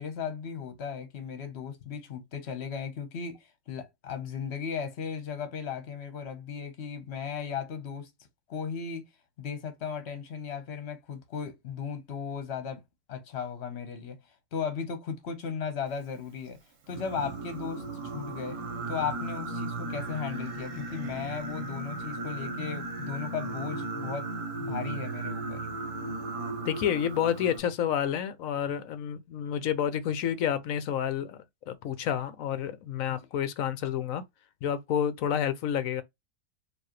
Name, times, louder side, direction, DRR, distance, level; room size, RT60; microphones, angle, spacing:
voice 1, 0.0-3.4 3.7-8.1 8.5-9.0 9.4-12.8 13.1-14.2 14.5-16.6 16.9-18.6 18.9-24.3 24.6-25.7 33.1-33.3, left 6 dB, 50° left, 1.2 m, -36 dB
Singing, 16.9-27.6, right 2 dB, 60° right, 1.3 m, -36 dB
voice 2, 26.6-34.2 34.6-36.0, left 9 dB, 70° left, 1.0 m, -29 dB
4.6 x 2.8 x 3.0 m
omnidirectional pair, 1.6 m